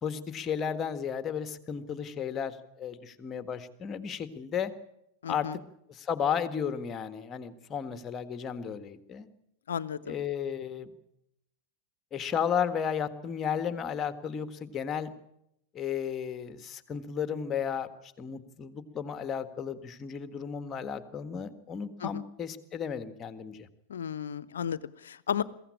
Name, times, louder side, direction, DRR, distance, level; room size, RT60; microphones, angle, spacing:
voice 1, 0.0-4.7 5.3-5.5 5.9-9.3 10.1-10.9 12.1-15.1 15.7-17.9 18.2-23.7, left 7 dB, 25° left, 12 dB, 1.6 m, -33 dB
voice 2, 5.2-5.6 9.7-10.1 22.0-22.2 23.9-25.4, left 8 dB, 65° left, 20 dB, 0.8 m, -34 dB
22.5 x 16.0 x 8.6 m, 0.81 s
figure-of-eight pair, 90°, 0 cm